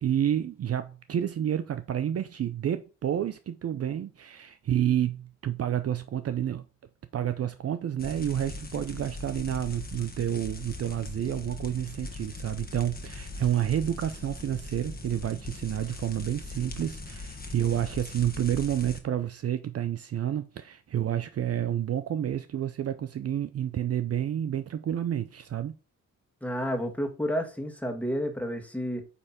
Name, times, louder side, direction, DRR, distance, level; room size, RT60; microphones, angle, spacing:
voice 1, 0.0-6.7 7.1-25.7, right 10 dB, 50° right, 0.6 m, -29 dB
sound 1, 8.0-19.0, left 2 dB, 30° left, 1.4 m, -40 dB
voice 2, 26.4-29.1, equal, 5° left, 1.7 m, -30 dB
8.4 x 3.3 x 4.2 m
supercardioid pair, 60°, 32 cm